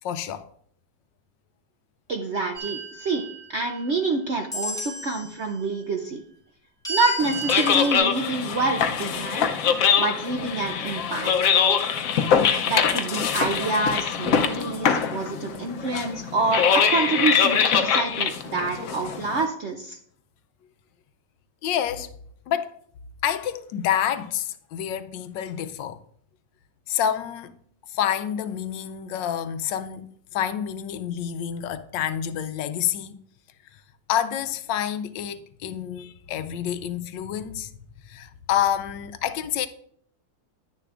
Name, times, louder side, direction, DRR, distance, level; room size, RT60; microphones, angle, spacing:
voice 1, 0.0-0.5 12.5-12.7 21.6-22.1 22.5-22.8 23.2-26.0 26.9-27.5 27.9-33.2 34.1-37.7 38.0-39.7, left 9 dB, 80° left, 1.3 m, -28 dB
voice 2, 2.1-3.2 3.5-6.2 6.9-9.6 10.0-11.3 12.7-20.0, right 3 dB, 65° right, 0.6 m, -27 dB
sound 1, 2.5-4.0 4.5-5.4 6.8-8.0, right 2 dB, ahead, 1.6 m, -33 dB
sound 2, 7.2-19.4, left 7 dB, 65° left, 0.9 m, -23 dB
10.5 x 10.0 x 2.5 m
omnidirectional pair, 2.0 m